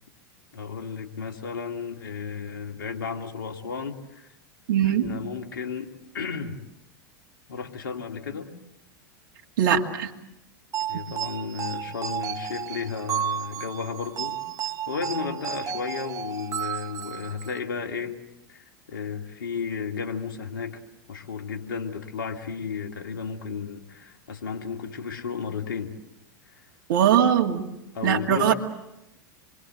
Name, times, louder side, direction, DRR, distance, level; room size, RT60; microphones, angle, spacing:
voice 1, 0.5-4.3 4.8-6.6 7.5-8.5 10.9-18.2 18.5-20.8 21.1-25.9 26.5-26.6 27.9-28.5, left 6 dB, 80° left, 3 dB, 2.4 m, -33 dB
voice 2, 4.7-5.1 9.6-10.1 26.9-27.6 28.0-28.5, right 9 dB, 65° right, 2 dB, 2.4 m, -21 dB
sound 1, 10.7-17.6, right 9 dB, 30° right, 1.1 m, -32 dB
27.5 x 23.5 x 8.0 m, 0.91 s
hypercardioid pair, 95°, 11 cm